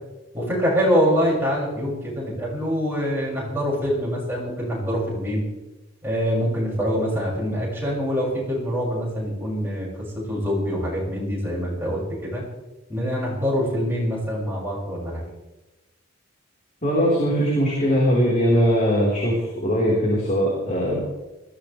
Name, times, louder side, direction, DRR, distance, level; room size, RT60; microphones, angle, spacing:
voice 1, 0.3-5.4 6.0-9.9 10.1-12.4 12.9-15.2, equal, 10° right, -5 dB, 6.8 m, -24 dB
voice 2, 16.8-21.0, equal, 35° left, -5 dB, 4.6 m, -20 dB
21.0 x 16.0 x 3.5 m, 1.1 s
head